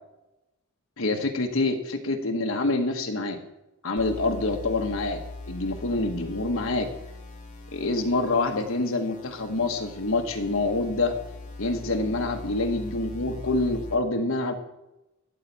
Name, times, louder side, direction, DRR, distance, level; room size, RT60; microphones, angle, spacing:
voice 1, 1.0-3.4 3.8-5.2 5.5-6.9 7.7-11.1 11.6-14.5, left 2 dB, 65° left, 5 dB, 1.2 m, -26 dB
sound 1, 4.0-14.0, left 2 dB, 35° left, 1.6 m, -41 dB
12.5 x 4.5 x 8.2 m, 0.95 s
head